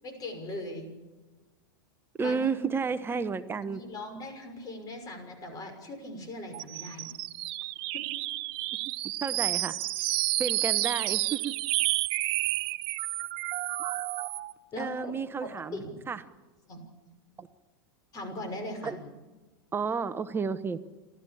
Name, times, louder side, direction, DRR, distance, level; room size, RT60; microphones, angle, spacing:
voice 1, 0.0-0.9 2.2-2.4 3.6-7.1 7.9-8.0 14.7-15.3 15.7-16.0 16.7-16.8 18.1-18.9, left 1 dB, 30° left, 6 dB, 6.0 m, -39 dB
voice 2, 2.2-3.8 9.2-9.7 10.4-11.5 14.8-16.2 17.4-17.5 18.8-19.0 19.7-20.8, right 5 dB, 20° right, 12 dB, 1.0 m, -31 dB
sound 1, 6.5-14.5, right 18 dB, 50° right, 0.9 m, -30 dB
29.0 x 13.5 x 8.7 m, 1.2 s
hypercardioid pair, 110°, 12 cm